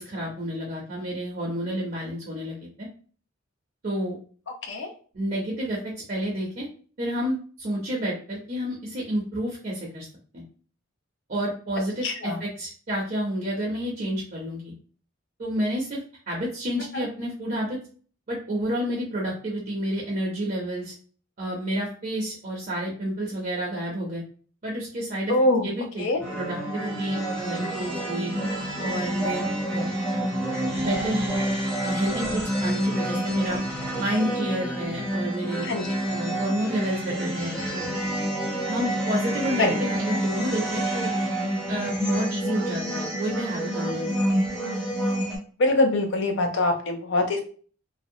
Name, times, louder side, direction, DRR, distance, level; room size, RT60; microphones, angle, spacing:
voice 1, 0.0-2.9 3.8-4.2 5.1-6.7 7.0-10.1 10.3-10.4 11.3-14.7 15.4-16.0 16.3-17.8 18.3-20.9 21.4-24.2 24.6-25.3 25.6-26.0 26.3-28.3 28.8-29.9 30.7-31.2 31.8-33.6 34.0-35.6 36.1-37.9 38.7-41.1 41.7-44.3, equal, 40° right, -3 dB, 0.6 m, -30 dB
voice 2, 12.0-12.4 16.9-17.0 25.3-25.7 26.0-26.2 35.6-35.9 39.6-39.7 45.6-47.4, left 2 dB, 60° left, 3 dB, 0.5 m, -23 dB
sound 1, 26.2-45.4, right 1 dB, 5° left, 0.6 m, -28 dB
2.6 x 2.0 x 2.6 m, 0.42 s
head